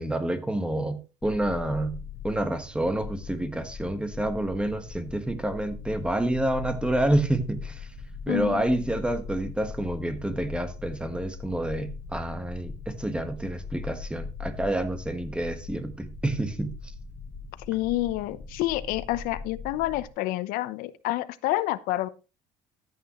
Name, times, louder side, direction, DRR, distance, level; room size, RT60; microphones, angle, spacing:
voice 1, 0.0-7.9 8.3-16.8, right 1 dB, 5° right, 1.4 m, -28 dB
sound 1, 1.2-20.1, left 5 dB, 30° left, 1.2 m, -40 dB
voice 2, 8.3-8.6 17.7-22.1, left 16 dB, 80° left, 0.8 m, -28 dB
13.5 x 9.0 x 3.0 m
cardioid pair, 120°, 15 cm